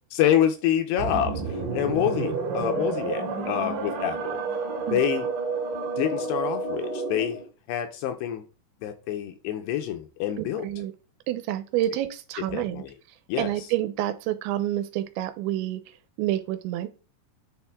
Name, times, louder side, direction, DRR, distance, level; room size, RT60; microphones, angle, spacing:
voice 1, 0.2-4.4 4.9-5.3 6.0-7.4 7.7-8.4 8.8-10.7 12.5-12.9 13.3-13.5, left 10 dB, 80° left, 2.6 m, -27 dB
sound 1, 1.0-7.5, right 4 dB, 55° right, 2.7 m, -30 dB
voice 2, 10.4-10.9 11.3-12.8 13.4-15.8 16.2-16.9, right 13 dB, 90° right, 3.0 m, -28 dB
10.0 x 4.5 x 3.6 m
omnidirectional pair, 5.2 m